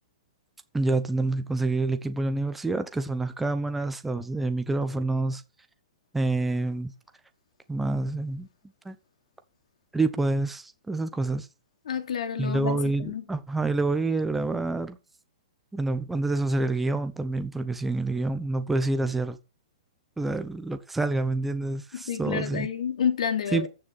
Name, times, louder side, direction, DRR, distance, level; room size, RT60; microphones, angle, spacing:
voice 1, 0.7-5.4 6.1-6.9 7.7-8.5 8.8-9.0 9.9-11.5 12.4-15.0 15.7-19.4 20.2-22.7 23.5-23.7, right 2 dB, 5° right, 0.9 m, -27 dB
voice 2, 11.9-13.2 21.9-23.7, left 7 dB, 75° left, 3.1 m, -29 dB
14.5 x 6.5 x 5.5 m
hypercardioid pair, 170°, 4 cm